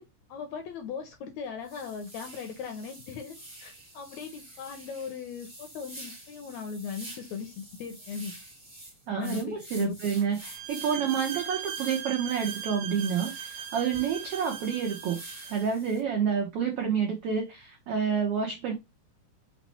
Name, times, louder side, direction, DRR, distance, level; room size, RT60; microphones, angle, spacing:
voice 1, 0.0-8.3 9.1-10.0, left 6 dB, 75° left, 1.7 m, -39 dB
sound 1, 1.0-1.2 1.6-16.0, right 1 dB, 25° right, 0.6 m, -47 dB
voice 2, 9.1-15.2 15.5-18.7, right 7 dB, 90° right, 1.3 m, -29 dB
sound 2, 10.4-15.7, right 8 dB, 70° right, 1.9 m, -39 dB
5.7 x 2.1 x 4.1 m
omnidirectional pair, 3.9 m